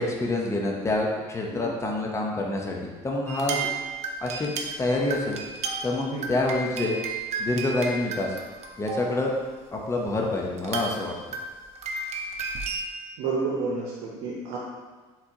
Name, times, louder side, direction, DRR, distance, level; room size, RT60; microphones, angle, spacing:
voice 1, 0.0-3.7 4.2-4.5 4.8-5.4 5.8-7.0 7.4-8.3 8.8-9.3 9.7-11.1, left 2 dB, 20° left, 0 dB, 0.7 m, -27 dB
sound 1, 3.3-9.3 10.0-10.1 10.6-12.8, right 4 dB, 50° right, 0.6 m, -33 dB
voice 2, 13.2-14.6, right 4 dB, 85° right, -3 dB, 0.8 m, -30 dB
4.4 x 3.9 x 2.8 m, 1.3 s
supercardioid pair, 95°, 15 cm